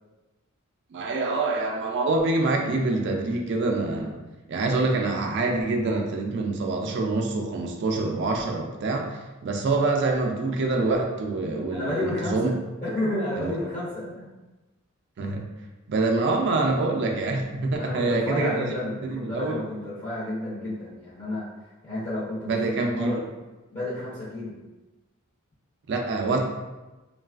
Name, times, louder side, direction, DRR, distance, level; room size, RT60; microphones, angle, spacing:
voice 1, 0.9-4.2 4.5-12.5 13.4-13.5 15.2-15.4 15.9-18.7 19.1-19.6 22.5-23.2 25.9-26.4, right 3 dB, 55° right, 2 dB, 0.4 m, -26 dB
voice 2, 11.7-12.5 12.8-14.3 17.8-21.5 21.8-22.6 22.9-23.2 23.7-24.5, left 1 dB, 35° left, -9 dB, 0.7 m, -31 dB
3.1 x 2.3 x 2.4 m, 1.1 s
head